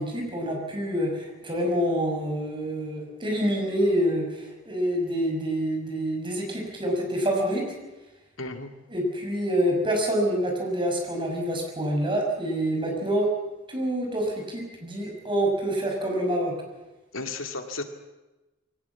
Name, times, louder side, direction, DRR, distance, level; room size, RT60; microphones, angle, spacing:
voice 1, 0.0-7.7 8.9-13.3 13.7-16.5, equal, 25° right, 1 dB, 5.9 m, -27 dB
voice 2, 8.4-8.7 17.1-17.8, left 3 dB, 80° left, 5 dB, 2.4 m, -33 dB
22.0 x 18.0 x 8.5 m, 1.1 s
head